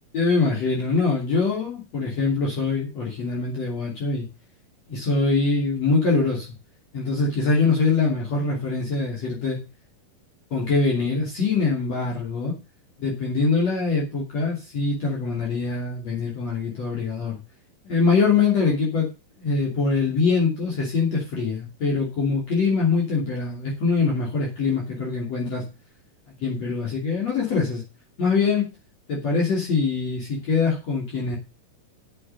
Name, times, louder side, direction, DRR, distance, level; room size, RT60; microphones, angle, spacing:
voice 1, 0.1-4.3 4.9-6.5 6.9-9.6 10.5-12.6 13.0-17.4 17.8-19.1 19.4-25.6 26.4-27.8 28.2-28.7 29.1-31.4, left 4 dB, 45° left, -3 dB, 3.9 m, -23 dB
8.9 x 7.6 x 6.8 m, 0.29 s
omnidirectional pair, 4.3 m